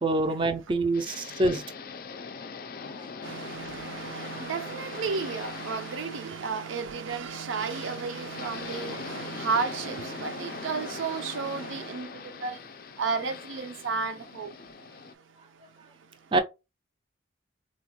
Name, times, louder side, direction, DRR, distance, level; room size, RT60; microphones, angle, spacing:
voice 1, 0.0-1.6 16.3-16.4, right 2 dB, 25° right, 0.4 m, -25 dB
sound 1, 0.9-15.1, left 5 dB, 50° left, 0.3 m, -41 dB
voice 2, 3.2-12.1 12.4-12.6 13.0-14.5, right 5 dB, 85° right, 0.5 m, -32 dB
4.0 x 2.3 x 2.8 m
head